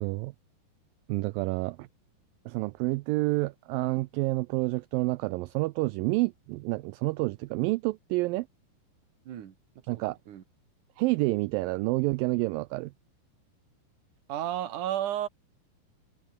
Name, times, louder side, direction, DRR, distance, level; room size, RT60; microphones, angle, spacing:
voice 1, 0.0-0.3 1.1-1.9 2.5-8.5 9.9-10.2 11.0-12.9, right 21 dB, 80° right, 2.1 m, -29 dB
voice 2, 9.2-10.4 14.3-15.3, right 11 dB, 60° right, 3.1 m, -33 dB
omnidirectional pair, 4.5 m